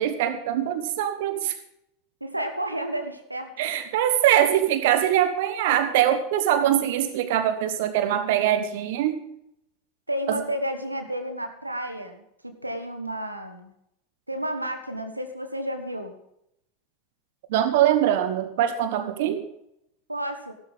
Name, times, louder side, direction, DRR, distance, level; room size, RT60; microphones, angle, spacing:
voice 1, 0.0-1.5 3.6-9.2 10.3-10.4 17.5-19.4, right 11 dB, 55° right, 10 dB, 1.3 m, -23 dB
voice 2, 2.2-3.5 10.1-13.7 14.3-16.1 20.1-20.5, right 1 dB, 90° right, 7 dB, 1.4 m, -31 dB
14.5 x 12.5 x 3.6 m, 0.79 s
figure-of-eight pair, 85°, 0 cm